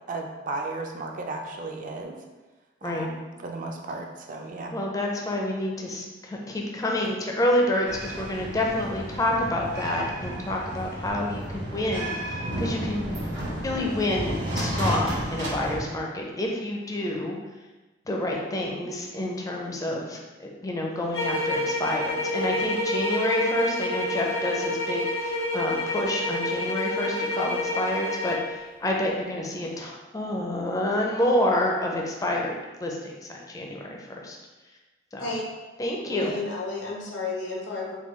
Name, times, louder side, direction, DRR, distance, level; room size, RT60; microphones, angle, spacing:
voice 1, 0.1-2.3 2.8-4.7, right 2 dB, 45° right, 2 dB, 0.4 m, -35 dB
voice 2, 4.7-13.0 13.6-17.4 18.1-32.6 32.8-34.4 35.1-35.3 35.8-36.3, left 1 dB, 20° left, -1 dB, 0.4 m, -28 dB
sound 1, 7.9-15.8, right 1 dB, 75° right, 0.9 m, -32 dB
sound 2, 21.1-28.5, left 1 dB, 65° left, 0.6 m, -28 dB
voice 3, 36.1-38.0, left 3 dB, 90° left, -4 dB, 0.9 m, -32 dB
3.7 x 2.2 x 3.0 m, 1.2 s
head